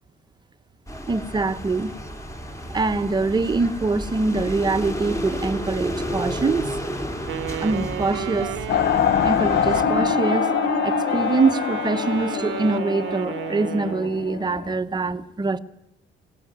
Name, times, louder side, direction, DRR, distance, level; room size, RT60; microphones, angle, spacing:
sound 1, 0.9-9.8, equal, 15° left, 2.8 m, -31 dB
voice 1, 1.1-1.9 2.7-6.8 7.6-8.5 9.2-10.5 10.8-15.6, right 3 dB, 20° right, 1.0 m, -24 dB
Wind instrument woodwind instrument, 7.3-14.2, right 12 dB, 70° right, 0.8 m, -32 dB
sound 2, 8.7-14.7, left 9 dB, 60° left, 1.0 m, -24 dB
21.5 x 18.0 x 9.3 m
cardioid pair, 140°, 21 cm